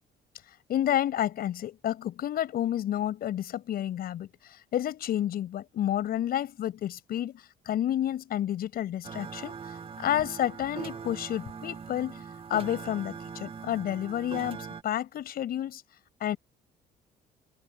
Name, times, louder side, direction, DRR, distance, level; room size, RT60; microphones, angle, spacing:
voice 1, 0.7-9.6 10.0-12.2 12.5-15.8 16.2-16.4, left 11 dB, 65° left, 7.3 m, -30 dB
sound 1, 9.0-14.8, right 6 dB, 35° right, 2.3 m, -41 dB
cardioid pair, 110°, 17 cm